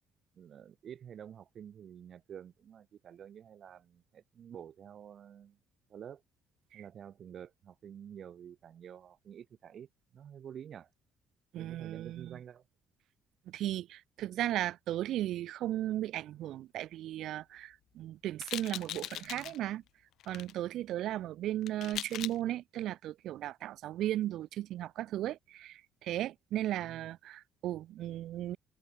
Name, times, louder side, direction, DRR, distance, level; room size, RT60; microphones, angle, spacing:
voice 1, 0.4-5.6 5.9-6.2 6.7-10.9 11.5-12.6 26.8-27.1, right 9 dB, 40° right, 2.2 m, -49 dB
voice 2, 11.5-12.4 13.5-19.8 20.3-28.6, right 13 dB, 60° right, 0.4 m, -36 dB
sound 1, 18.4-19.6 20.2-20.5 21.6-22.4, left 13 dB, 60° left, 3.4 m, -40 dB
cardioid pair, 175°, 0 cm